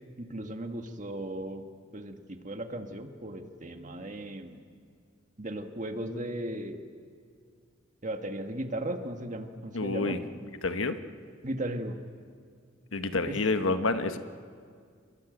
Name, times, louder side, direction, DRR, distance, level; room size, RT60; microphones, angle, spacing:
voice 1, 0.2-1.7 1.9-4.6 5.4-6.8 8.0-10.2 11.4-12.0 13.3-14.0, right 1 dB, 40° right, 5 dB, 1.7 m, -36 dB
voice 2, 9.7-10.2 10.6-11.0 12.9-14.2, left 3 dB, 80° left, 8 dB, 1.2 m, -28 dB
27.0 x 22.0 x 8.0 m, 2.1 s
head